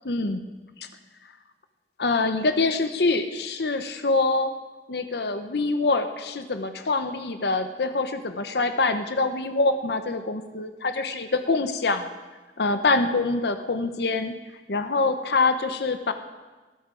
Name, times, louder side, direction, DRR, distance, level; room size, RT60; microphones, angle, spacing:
voice 1, 0.0-0.5 0.8-0.9 2.0-4.5 4.9-12.1 12.6-14.3 14.7-16.1, left 3 dB, 65° left, 8 dB, 0.8 m, -25 dB
21.0 x 13.5 x 3.9 m, 1.2 s
head